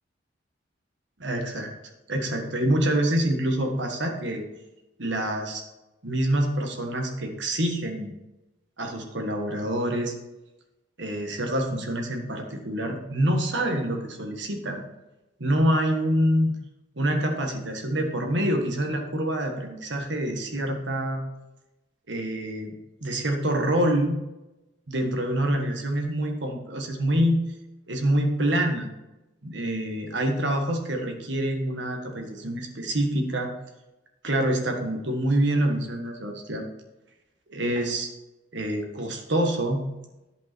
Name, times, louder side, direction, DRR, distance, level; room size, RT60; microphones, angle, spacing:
voice 1, 1.2-1.7 2.1-4.4 5.0-5.6 6.0-8.1 8.8-10.1 11.0-14.8 15.4-16.5 17.0-21.2 22.1-22.7 23.0-24.2 24.9-27.4 27.9-28.9 29.4-33.5 34.2-36.6 37.5-38.1 38.5-39.8, right 1 dB, 70° right, 3 dB, 1.6 m, -26 dB
10.5 x 5.6 x 4.5 m, 0.99 s
head